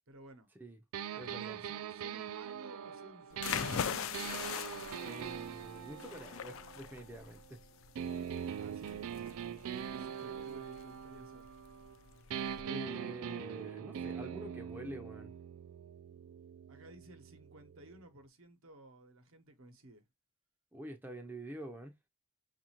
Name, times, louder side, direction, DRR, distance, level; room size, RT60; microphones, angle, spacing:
voice 1, 0.1-0.5 1.1-3.9 8.6-11.5 16.7-20.0, right 1 dB, 75° right, 0.9 m, -56 dB
sound 1, 0.9-7.5 8.0-12.0 12.3-18.0, right 8 dB, 90° right, 0.4 m, -43 dB
voice 2, 1.2-1.6 5.0-7.6 12.6-15.3 20.7-21.9, right 1 dB, 10° right, 0.4 m, -46 dB
sound 2, 3.3-12.6, left 8 dB, 70° left, 0.4 m, -42 dB
6.2 x 2.5 x 2.9 m
head